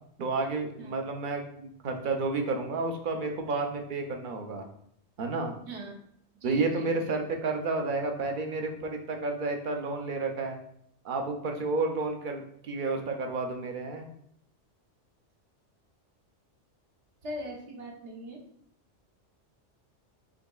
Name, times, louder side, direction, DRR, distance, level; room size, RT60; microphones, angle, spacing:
voice 1, 0.2-4.7 5.2-5.6 6.4-10.6 11.0-14.1, right 3 dB, 55° right, 4 dB, 0.7 m, -31 dB
voice 2, 5.7-6.0 6.4-7.2 17.2-18.4, right 1 dB, 70° right, 0 dB, 1.1 m, -40 dB
6.3 x 2.8 x 2.3 m, 0.67 s
omnidirectional pair, 1.2 m